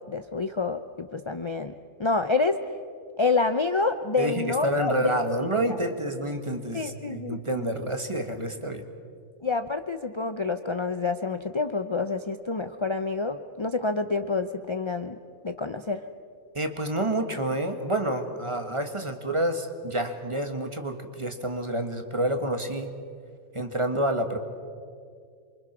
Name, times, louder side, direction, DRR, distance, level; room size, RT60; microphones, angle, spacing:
voice 1, 0.0-1.7 2.0-2.7 3.2-5.5 6.7-7.7 9.4-15.2 15.4-16.0, left 3 dB, 40° left, 8 dB, 0.4 m, -28 dB
voice 2, 4.2-8.8 16.5-22.9 23.5-24.4, right 1 dB, 20° right, 6 dB, 1.7 m, -28 dB
28.0 x 24.5 x 6.1 m, 2.2 s
omnidirectional pair, 1.6 m